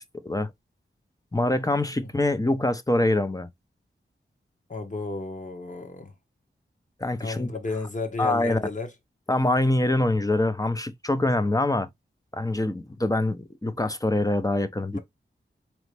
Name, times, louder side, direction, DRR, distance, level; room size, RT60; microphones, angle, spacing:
voice 1, 1.3-3.5 7.0-7.5 8.2-8.7 9.3-11.9 12.3-15.0, left 2 dB, 15° left, 0.6 m, -24 dB
voice 2, 4.7-6.1 7.2-8.9 14.9-15.0, left 3 dB, 40° left, 1.3 m, -32 dB
4.1 x 3.1 x 3.3 m
cardioid pair, 50°, 21 cm